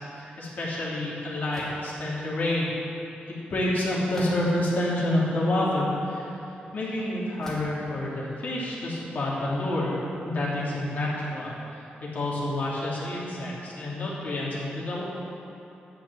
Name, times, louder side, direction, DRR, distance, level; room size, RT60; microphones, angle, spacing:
voice 1, 0.1-2.7 3.2-6.3 6.7-11.5 12.0-15.0, left 1 dB, 55° left, -6 dB, 2.8 m, -28 dB
sound 1, 1.5-1.9 4.1-4.7 5.4-5.5 7.4-7.8, equal, 20° left, 2.5 m, -42 dB
10.5 x 6.0 x 8.1 m, 2.9 s
wide cardioid pair, 150°, 3 cm